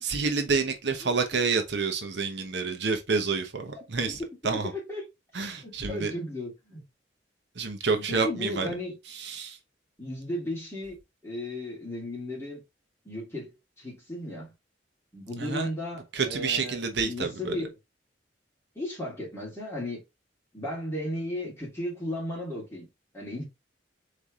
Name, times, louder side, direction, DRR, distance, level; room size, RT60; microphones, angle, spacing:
voice 1, 0.0-4.2 4.4-4.7 5.3-6.1 7.6-8.7 9.1-9.6 15.4-15.7 16.1-17.6, right 4 dB, 65° right, 0.9 m, -28 dB
voice 2, 4.5-5.1 5.6-6.8 7.9-9.0 10.0-11.0 11.2-12.6 13.0-14.5 15.1-17.7 18.7-20.0 20.5-22.9 23.1-23.5, left 1 dB, 15° left, 2.5 m, -35 dB
4.2 x 3.3 x 3.6 m
head